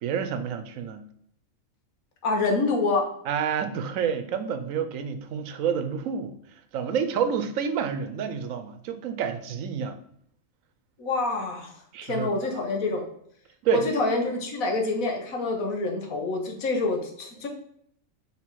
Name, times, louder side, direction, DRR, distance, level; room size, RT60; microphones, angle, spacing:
voice 1, 0.0-1.0 3.3-6.4 6.7-10.0 11.9-12.7 13.6-13.9, right 7 dB, 75° right, 9 dB, 1.0 m, -29 dB
voice 2, 2.2-3.1 11.0-11.7 12.0-13.1 13.7-17.5, left 3 dB, 85° left, 3 dB, 1.5 m, -26 dB
5.9 x 3.7 x 4.5 m, 0.70 s
omnidirectional pair, 1.4 m